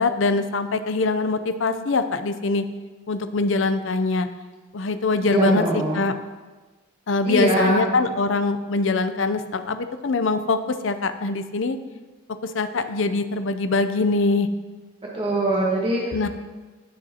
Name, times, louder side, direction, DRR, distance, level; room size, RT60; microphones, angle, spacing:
voice 1, 0.0-2.6 3.1-4.3 4.7-5.6 5.9-6.1 7.1-11.8 12.4-14.5 16.1-16.3, left 3 dB, 75° left, 10 dB, 0.6 m, -23 dB
voice 2, 5.2-6.0 7.2-7.9 15.1-16.3, right 1 dB, 25° right, -4 dB, 1.3 m, -23 dB
16.0 x 6.4 x 2.9 m, 1.3 s
head